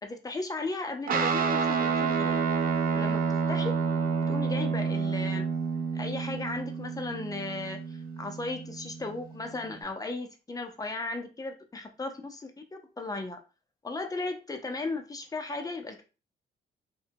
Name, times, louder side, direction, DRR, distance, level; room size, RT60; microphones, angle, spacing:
voice 1, 0.0-2.5 2.9-3.7 4.3-5.5 5.9-13.4 13.8-16.0, left 3 dB, 20° left, 5 dB, 0.5 m, -36 dB
Guitar, 1.1-9.8, right 5 dB, 45° right, 0.5 m, -29 dB
2.6 x 2.1 x 2.8 m, 0.32 s
cardioid pair, 90°, 20 cm